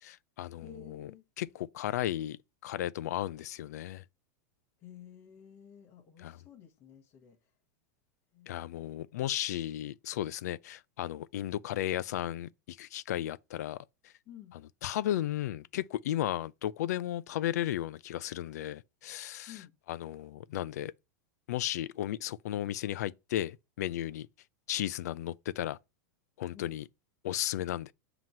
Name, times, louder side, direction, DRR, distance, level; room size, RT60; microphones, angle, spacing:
voice 1, 0.0-1.1 1.4-4.0 6.2-6.4 8.5-13.8 14.8-19.6 19.9-20.9 21.5-24.3 24.7-25.8 26.4-26.8 27.2-27.9, left 12 dB, 70° left, 0.4 m, -34 dB
voice 2, 0.6-1.3 4.8-7.5 8.3-8.9 14.3-14.5 19.5-19.7 26.5-26.7, left 9 dB, 25° left, 1.0 m, -52 dB
7.7 x 3.0 x 5.3 m
supercardioid pair, 170°, 9 cm